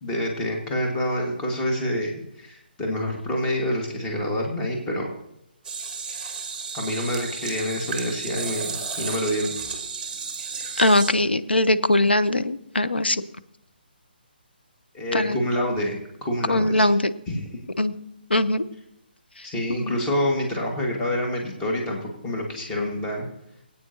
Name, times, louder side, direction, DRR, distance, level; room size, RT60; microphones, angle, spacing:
voice 1, 0.0-5.1 6.7-9.5 14.9-16.9 17.3-17.4 19.4-23.2, left 1 dB, 15° left, -1 dB, 1.7 m, -27 dB
sound 1, 5.6-11.1, right 5 dB, 10° right, 1.3 m, -33 dB
voice 2, 10.8-13.2 15.1-15.4 16.5-17.1 17.8-17.9 18.3-18.6 19.8-20.0, left 1 dB, 75° left, 11 dB, 0.6 m, -21 dB
21.0 x 8.8 x 2.8 m, 0.79 s
figure-of-eight pair, 140°, 6 cm